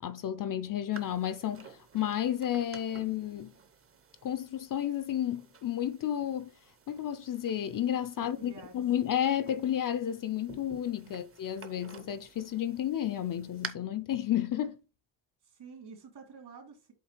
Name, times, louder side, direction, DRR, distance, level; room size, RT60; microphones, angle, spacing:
voice 1, 0.0-3.5 4.2-6.5 6.9-14.8, left 10 dB, 45° left, 0.4 m, -32 dB
sound 1, 0.9-13.7, right 6 dB, 30° right, 0.7 m, -51 dB
voice 2, 8.4-8.7 11.1-11.2 15.4-16.9, right 5 dB, 55° right, 2.5 m, -49 dB
8.1 x 3.2 x 4.4 m
wide cardioid pair, 165°, 47 cm